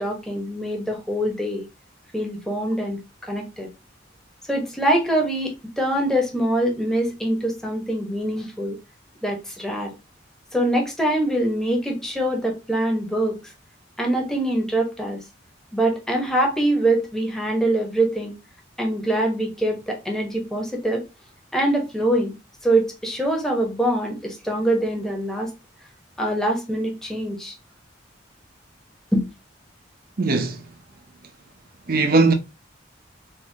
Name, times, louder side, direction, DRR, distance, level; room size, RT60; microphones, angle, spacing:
voice 1, 0.0-1.7 2.1-3.7 4.5-8.8 9.2-9.9 10.5-13.4 14.0-15.2 15.7-18.4 18.8-21.0 21.5-22.3 22.6-25.5 26.2-27.5 29.1-29.3, right 1 dB, 5° left, 1.2 m, -24 dB
voice 2, 30.2-30.6 31.9-32.3, right 3 dB, 50° right, 0.7 m, -19 dB
4.3 x 2.7 x 2.8 m
head